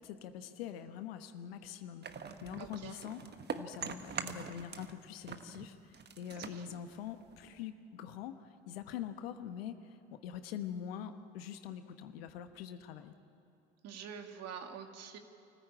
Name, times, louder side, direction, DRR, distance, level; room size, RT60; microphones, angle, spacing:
voice 1, 0.0-3.2 3.6-10.0 10.2-13.1, left 9 dB, 80° left, 9 dB, 1.2 m, -44 dB
sound 1, 2.0-5.0 5.2-7.6, right 6 dB, 35° right, 1.3 m, -43 dB
voice 2, 2.6-3.0 6.4-6.8 13.8-15.2, right 7 dB, 60° right, 5 dB, 2.2 m, -46 dB
25.0 x 14.5 x 8.8 m, 2.7 s
hypercardioid pair, 65°, 29 cm